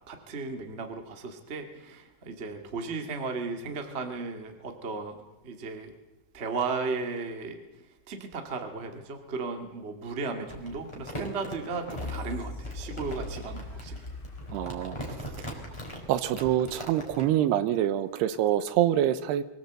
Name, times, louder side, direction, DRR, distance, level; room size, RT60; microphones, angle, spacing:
voice 1, 0.1-5.9 6.3-14.0, right 4 dB, 35° right, 4 dB, 1.0 m, -35 dB
Crumpling crinkling, 10.5-17.3, equal, 5° left, 3.6 m, -40 dB
sound 1, 11.9-16.8 17.2-17.3, left 2 dB, 35° left, 0.8 m, -41 dB
voice 2, 14.5-15.0 16.1-19.4, right 11 dB, 80° right, 13 dB, 2.9 m, -25 dB
24.0 x 16.5 x 8.0 m, 1.1 s
omnidirectional pair, 4.8 m